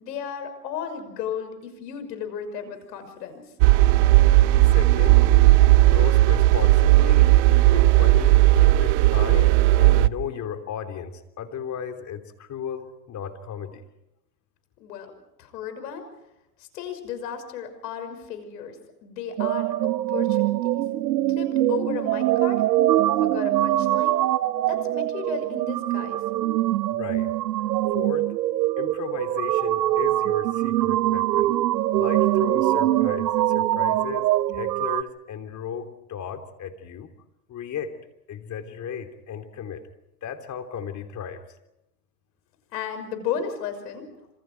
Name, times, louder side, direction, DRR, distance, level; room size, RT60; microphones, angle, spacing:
voice 1, 0.0-3.4 14.8-15.1 15.4-16.0 16.6-19.7 20.1-20.8 21.3-22.7 23.2-24.2 24.6-26.2 42.7-44.1, left 7 dB, 80° left, 8 dB, 6.2 m, -34 dB
sound 1, 3.6-10.1, right 17 dB, 60° right, 0.8 m, -16 dB
voice 2, 4.6-5.3 5.8-13.8 26.9-27.3 27.9-28.3 28.8-31.5 31.9-37.1 37.5-37.9 38.3-39.8 40.2-41.4, left 8 dB, 35° left, 7 dB, 3.3 m, -35 dB
sound 2, 19.4-35.0, right 14 dB, 85° right, 1.0 m, -23 dB
27.0 x 27.0 x 4.7 m, 0.90 s
hypercardioid pair, 105°, 49 cm